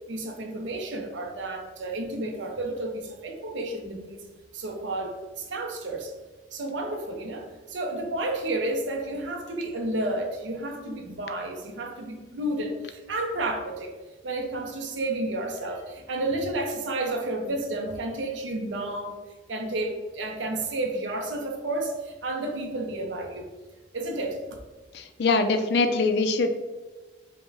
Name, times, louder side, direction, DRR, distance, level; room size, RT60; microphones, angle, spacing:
voice 1, 0.1-4.3 4.5-6.1 6.5-13.9 14.2-19.2 19.5-23.5 23.9-24.4, right 2 dB, 85° right, 3 dB, 0.6 m, -31 dB
voice 2, 24.9-26.5, left 3 dB, 65° left, 8 dB, 0.4 m, -23 dB
5.2 x 2.2 x 3.3 m, 1.2 s
head